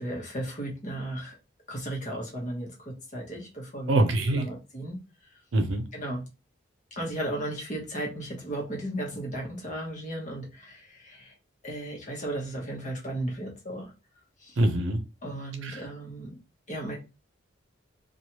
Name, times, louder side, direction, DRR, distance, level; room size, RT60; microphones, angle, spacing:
voice 1, 0.0-1.4 1.7-5.0 5.9-6.2 7.0-11.3 11.6-13.9 14.4-14.6 15.2-16.4 16.7-17.0, right 1 dB, 40° left, 1.0 m, -35 dB
voice 2, 3.9-4.5 5.5-5.9 14.6-15.0 15.6-15.8, right 1 dB, 80° right, 0.6 m, -24 dB
3.0 x 2.4 x 2.8 m
head